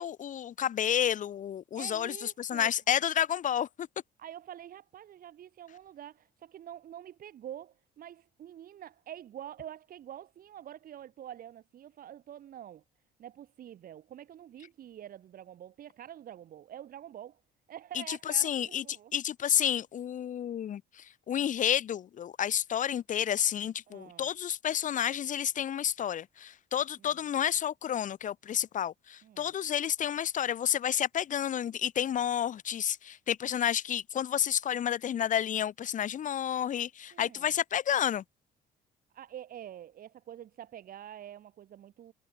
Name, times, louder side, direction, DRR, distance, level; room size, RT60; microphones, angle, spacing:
voice 1, 0.0-3.9 18.1-18.8 19.1-38.2, left 9 dB, 50° left, 1.6 m, -30 dB
voice 2, 1.8-2.7 4.2-12.8 13.2-17.4 17.7-19.1 23.9-24.3 27.1-27.2 29.2-29.5 37.1-37.5 39.1-42.1, right 11 dB, 60° right, 7.9 m, -47 dB
cardioid pair, 110°, 17 cm